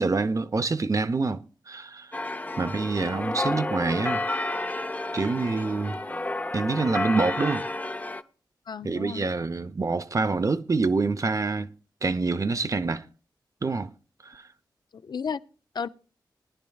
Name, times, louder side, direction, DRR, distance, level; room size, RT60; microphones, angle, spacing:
voice 1, 0.0-2.1 2.6-4.2 5.1-6.0 6.5-7.6 8.8-11.7 12.0-13.0 13.6-13.9 14.3-14.4, right 3 dB, 45° right, 0.7 m, -26 dB
sound 1, 2.1-8.2, left 2 dB, 20° left, 0.6 m, -31 dB
voice 2, 8.7-9.3 14.9-15.4 15.7-15.9, left 6 dB, 65° left, 0.5 m, -34 dB
19.0 x 10.0 x 2.3 m
cardioid pair, 55°, 8 cm